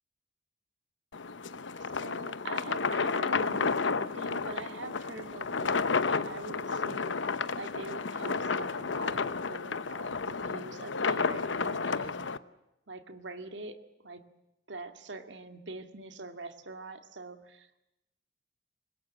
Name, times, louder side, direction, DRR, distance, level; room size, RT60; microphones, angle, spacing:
sound 1, 1.1-12.4, left 4 dB, 75° left, 0.9 m, -31 dB
voice 1, 1.7-12.3 12.9-14.2 14.7-17.8, right 2 dB, 70° right, 8 dB, 2.2 m, -44 dB
25.5 x 21.0 x 7.6 m, 0.92 s
head